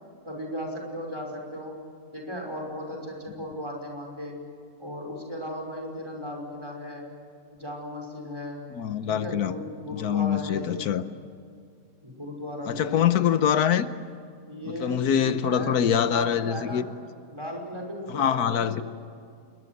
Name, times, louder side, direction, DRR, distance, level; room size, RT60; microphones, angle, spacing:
voice 1, 0.3-1.8 2.1-4.3 4.8-7.1 7.5-8.6 9.1-10.9 12.0-13.2 14.5-16.8 17.3-18.8, equal, 15° right, 5.6 m, -36 dB
voice 2, 8.8-9.5 9.9-11.0 12.7-13.9 14.8-16.8 18.1-18.8, left 9 dB, 85° left, 1.4 m, -24 dB
28.0 x 22.0 x 7.9 m
omnidirectional pair, 1.6 m